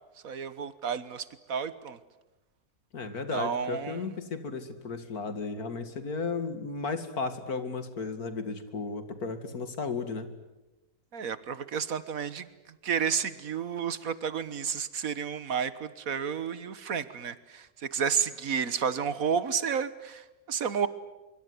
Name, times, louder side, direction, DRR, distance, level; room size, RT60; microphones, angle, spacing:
voice 1, 0.2-2.0 3.3-4.1 11.1-20.9, right 7 dB, 70° right, 15 dB, 1.7 m, -31 dB
voice 2, 2.9-10.3, left 4 dB, 85° left, 10 dB, 2.7 m, -34 dB
24.5 x 24.0 x 9.5 m, 1.0 s
omnidirectional pair, 1.5 m